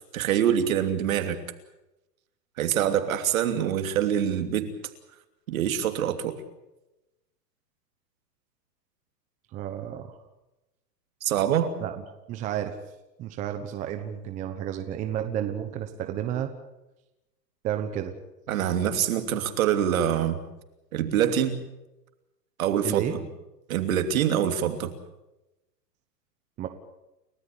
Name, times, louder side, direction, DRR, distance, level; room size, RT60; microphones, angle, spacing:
voice 1, 0.1-1.4 2.6-4.7 5.5-6.3 11.2-11.7 18.5-20.4 20.9-21.6 22.6-23.0 23.7-24.9, right 9 dB, 55° right, 7 dB, 3.1 m, -25 dB
voice 2, 9.5-10.2 11.8-12.0 12.3-12.8 13.2-16.5 17.6-18.2 22.8-23.2 26.6-26.7, right 10 dB, 15° right, 7 dB, 1.1 m, -31 dB
30.0 x 14.0 x 8.6 m, 0.96 s
hypercardioid pair, 160°, 49 cm